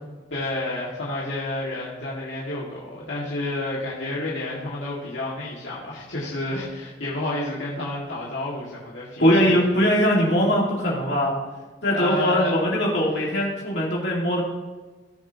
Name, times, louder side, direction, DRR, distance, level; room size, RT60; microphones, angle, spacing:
voice 1, 0.3-9.6 11.9-12.5, left 2 dB, 85° left, -7 dB, 2.0 m, -30 dB
voice 2, 9.2-11.3 11.8-14.4, equal, 70° left, -4 dB, 3.0 m, -21 dB
17.5 x 6.6 x 2.9 m, 1.3 s
head